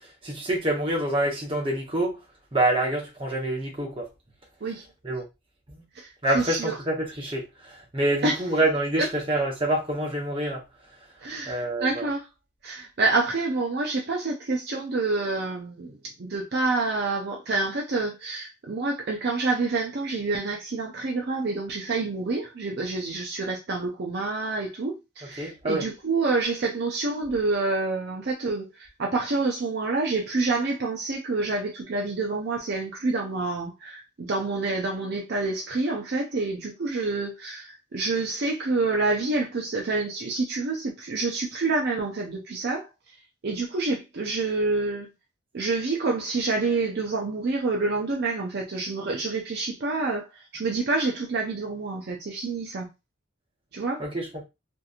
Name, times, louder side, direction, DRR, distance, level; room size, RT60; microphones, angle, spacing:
voice 1, 0.2-2.2 2.5-4.1 5.0-5.2 5.7-5.8 6.2-10.6 11.5-12.1 25.4-25.9 54.0-54.4, right 1 dB, 25° right, 0.8 m, -26 dB
voice 2, 5.9-6.8 8.2-8.4 11.2-12.3 12.6-42.9 43.4-45.1 45.5-52.9 53.7-54.1, right 3 dB, 50° right, 0.5 m, -28 dB
2.8 x 2.6 x 2.4 m
head